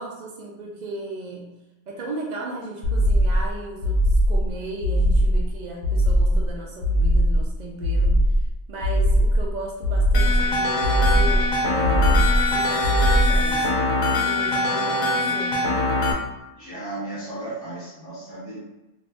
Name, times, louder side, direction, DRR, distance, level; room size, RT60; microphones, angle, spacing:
voice 1, 0.0-1.5 1.9-13.8 14.2-15.6, right 2 dB, 85° right, -2 dB, 0.4 m, -36 dB
sound 1, 2.8-3.5 3.8-4.5 4.8-5.5 5.8-6.5 6.8-7.5 7.8-8.5 8.8-9.5 9.8-10.5 10.8-11.5 11.8-12.5 12.8-13.5, equal, 55° left, 0.6 m, -19 dB
sound 2, 10.1-16.1, left 2 dB, 80° left, 1.0 m, -23 dB
voice 2, 16.5-18.6, right 2 dB, 20° left, -9 dB, 1.0 m, -35 dB
2.6 x 2.4 x 3.4 m, 1.0 s
omnidirectional pair, 1.3 m